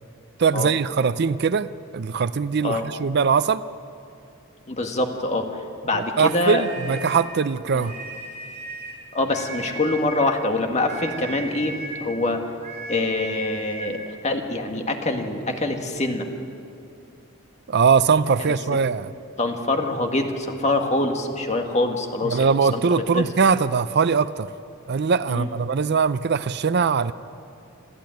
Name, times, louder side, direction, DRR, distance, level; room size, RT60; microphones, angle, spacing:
voice 1, 0.4-3.6 5.9-7.9 17.7-19.1 22.2-24.5 24.9-27.1, right 5 dB, 50° right, 15 dB, 0.5 m, -21 dB
voice 2, 4.7-5.5 5.8-6.6 6.9-7.0 7.7-7.9 9.1-12.4 12.9-16.3 18.4-18.5 19.4-22.4 22.7-22.8 23.1-23.3 25.3-25.5, left 2 dB, 35° left, 4 dB, 1.9 m, -25 dB
sound 1, 6.2-7.3 7.8-9.0 9.3-10.3 10.9-12.1 12.6-14.0, right 2 dB, 35° right, 5.4 m, -36 dB
26.5 x 14.0 x 9.2 m, 2.6 s
head